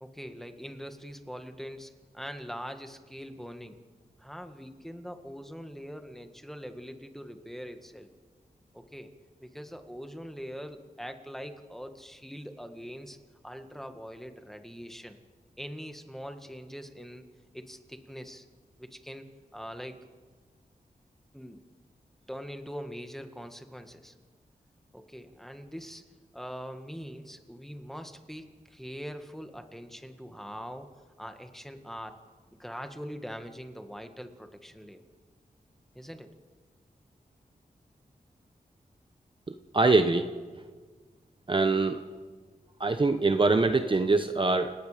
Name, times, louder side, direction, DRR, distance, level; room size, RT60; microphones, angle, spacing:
voice 1, 0.0-3.8 4.2-8.1 8.7-9.1 9.4-13.2 13.4-15.2 15.6-17.2 17.5-18.4 18.8-19.3 19.5-19.9 21.3-21.6 22.3-24.1 24.9-26.0 26.3-30.9 31.2-32.2 32.6-35.0 36.0-36.3, equal, ahead, 6 dB, 1.8 m, -42 dB
voice 2, 39.7-40.3 41.5-42.0 42.8-44.7, right 3 dB, 35° right, 7 dB, 1.0 m, -23 dB
30.0 x 18.5 x 5.1 m, 1.4 s
wide cardioid pair, 85°, 15 cm